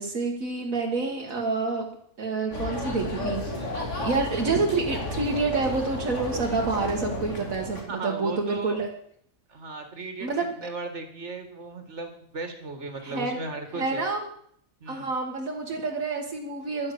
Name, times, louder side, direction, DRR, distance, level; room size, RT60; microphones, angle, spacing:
voice 1, 0.0-1.9 2.2-8.9 10.2-10.5 13.0-13.4 13.8-14.3 14.9-16.9, right 3 dB, 75° right, 1 dB, 1.9 m, -28 dB
sound 1, 2.5-7.8, left 1 dB, 60° left, 3.1 m, -32 dB
voice 2, 7.9-8.8 9.5-14.1 14.8-15.1, right 3 dB, 55° right, 5 dB, 2.4 m, -36 dB
11.5 x 10.0 x 8.4 m, 0.69 s
omnidirectional pair, 1.4 m